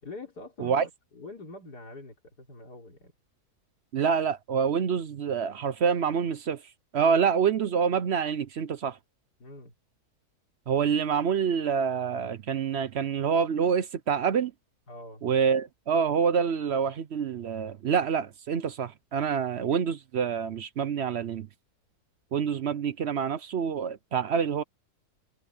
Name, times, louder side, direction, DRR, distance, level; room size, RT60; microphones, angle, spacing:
voice 1, 0.0-3.1 9.4-9.7 14.9-15.2, left 2 dB, 85° left, 4.4 m, -44 dB
voice 2, 3.9-6.6 6.9-9.0 10.7-14.5 15.2-21.5 22.3-24.6, right 7 dB, 55° right, 0.8 m, -27 dB
omnidirectional pair, 1.7 m